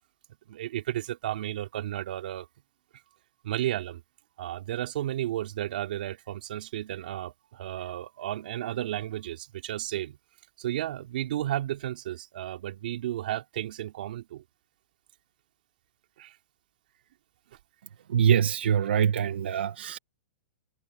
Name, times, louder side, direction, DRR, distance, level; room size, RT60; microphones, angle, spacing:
voice 1, 0.5-2.5 3.4-4.0 4.4-10.2 10.6-14.4 16.2-16.3, right 13 dB, 55° right, 3.3 m, -33 dB
voice 2, 18.1-20.0, right 8 dB, 75° right, 1.2 m, -24 dB
hypercardioid pair, 165°, 6 cm